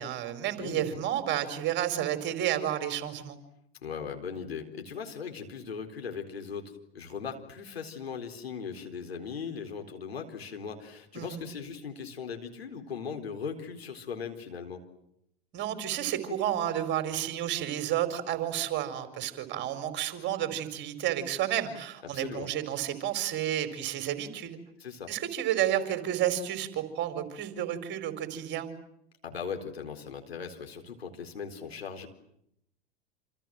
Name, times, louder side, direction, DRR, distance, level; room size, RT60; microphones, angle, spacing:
voice 1, 0.0-3.4 11.1-11.4 15.5-24.6 25.1-28.7, right 11 dB, 35° right, 9 dB, 4.6 m, -31 dB
voice 2, 0.6-1.0 3.8-14.8 22.0-22.5 24.8-25.1 29.2-32.1, left 6 dB, 75° left, 5 dB, 4.1 m, -39 dB
28.0 x 27.5 x 7.7 m, 0.77 s
figure-of-eight pair, 90°, 31 cm